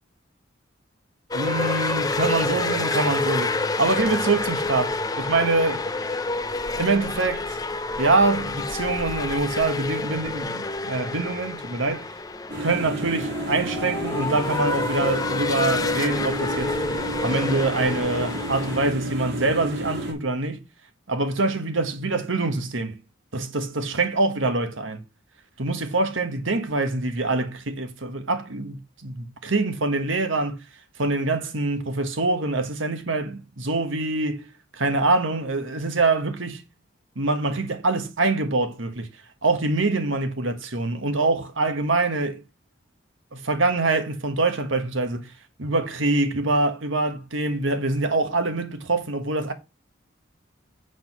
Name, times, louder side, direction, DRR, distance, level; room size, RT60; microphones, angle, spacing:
sound 1, 1.3-18.9, left 3 dB, 20° left, 0.6 m, -28 dB
voice 1, 1.3-5.9 6.8-7.4 8.0-12.1 12.6-16.8 17.2-20.6 21.1-23.0 23.3-25.0 25.6-30.6 31.0-34.4 34.7-36.6 37.1-39.1 39.4-42.4 43.3-45.3 45.6-49.5, right 3 dB, 85° right, 1.4 m, -24 dB
sound 2, 12.5-20.1, right 1 dB, 55° right, 2.6 m, -31 dB
8.0 x 5.0 x 6.0 m
head